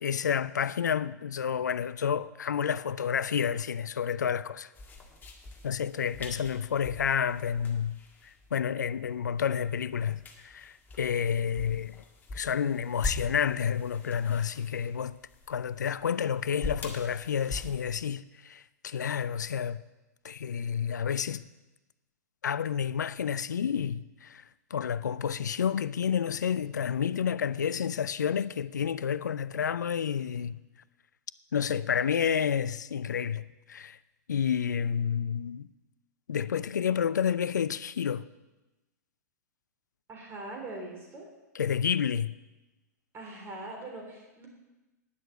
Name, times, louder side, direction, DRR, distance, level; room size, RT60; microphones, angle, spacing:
voice 1, 0.0-4.7 5.6-8.0 8.5-12.0 12.3-15.1 15.5-19.8 20.2-21.4 22.4-24.4 24.7-30.6 31.5-34.0 34.3-35.7 36.3-38.2 41.5-42.4, left 7 dB, 80° left, 0.4 m, -30 dB
sound 1, 4.7-18.0, left 2 dB, 20° left, 1.7 m, -43 dB
voice 2, 40.1-41.3 43.1-44.5, right 2 dB, 25° right, 3.5 m, -41 dB
10.0 x 6.6 x 7.8 m
hypercardioid pair, 105°, 9 cm